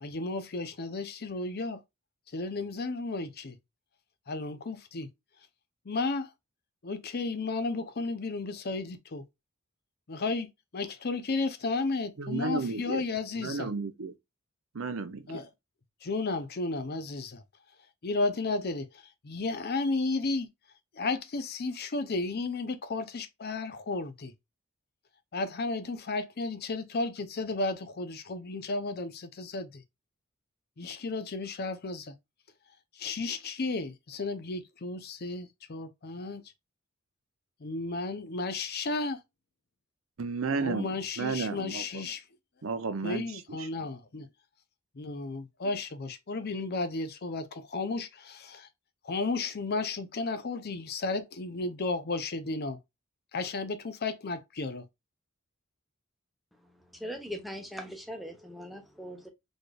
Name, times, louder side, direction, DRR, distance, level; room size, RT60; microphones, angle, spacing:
voice 1, 0.0-1.8 2.3-3.6 4.3-5.1 5.9-6.3 6.8-9.2 10.1-10.5 10.7-13.7 15.3-15.5 16.0-17.4 18.0-20.5 20.9-24.3 25.3-29.8 30.8-32.1 33.0-36.4 37.6-39.2 40.6-42.2 43.0-44.2 45.0-48.7 49.0-52.8 53.3-54.8, left 3 dB, 50° left, 0.6 m, -33 dB
voice 2, 12.2-13.0 13.4-14.1 14.7-15.2 40.2-40.9 41.2-41.8 42.6-43.2, right 4 dB, 70° right, 0.6 m, -32 dB
voice 3, 56.6-59.3, equal, ahead, 0.9 m, -41 dB
4.2 x 3.3 x 2.3 m
head